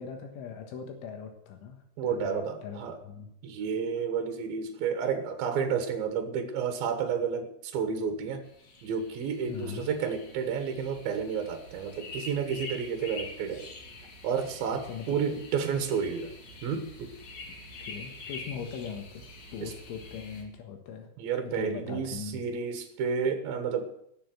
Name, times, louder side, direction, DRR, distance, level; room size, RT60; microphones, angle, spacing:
voice 1, 0.0-3.3 9.5-9.9 14.8-15.2 17.5-17.6 17.9-19.2 19.5-21.1 21.5-22.4, left 7 dB, 80° left, 4 dB, 3.9 m, -40 dB
voice 2, 2.0-3.0 3.4-8.4 8.8-13.7 14.2-16.3 16.6-17.2 19.6-19.7 21.2-23.9, right 6 dB, 65° right, 6 dB, 2.6 m, -31 dB
sound 1, 8.4-20.4, left 2 dB, 45° left, 2.9 m, -46 dB
19.0 x 7.3 x 7.7 m, 0.74 s
omnidirectional pair, 5.6 m